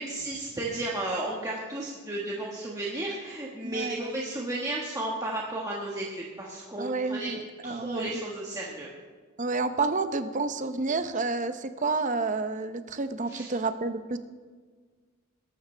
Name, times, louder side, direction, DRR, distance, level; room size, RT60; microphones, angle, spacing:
voice 1, 0.0-7.3 7.6-8.9 13.3-13.5, right 2 dB, 15° right, -4 dB, 1.5 m, -33 dB
voice 2, 3.6-4.1 6.8-8.2 9.4-14.2, right 3 dB, 35° right, 10 dB, 0.7 m, -30 dB
21.0 x 12.0 x 3.4 m, 1.5 s
head